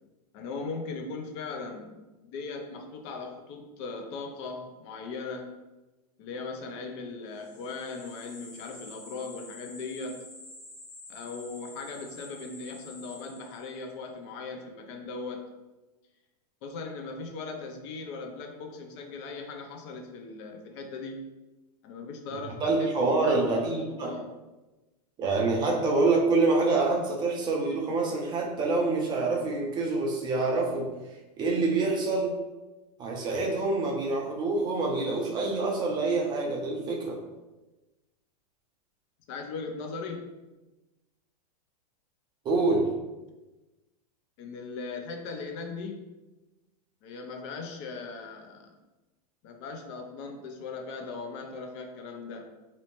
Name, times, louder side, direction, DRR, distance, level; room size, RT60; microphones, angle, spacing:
voice 1, 0.3-2.0 2.2-5.5 6.2-10.2 11.1-15.4 16.6-21.2 21.8-24.3 39.3-40.3 44.4-46.0 47.0-48.7 49.4-52.5, left 4 dB, 45° left, 4 dB, 0.4 m, -38 dB
sound 1, 7.3-13.9, left 2 dB, 90° left, 0.7 m, -48 dB
voice 2, 22.6-24.2 25.2-30.9 31.4-32.4 33.0-37.2 42.4-42.9, right 3 dB, 20° right, -1 dB, 0.4 m, -26 dB
2.6 x 2.1 x 2.9 m, 1.1 s
supercardioid pair, 140°, 20 cm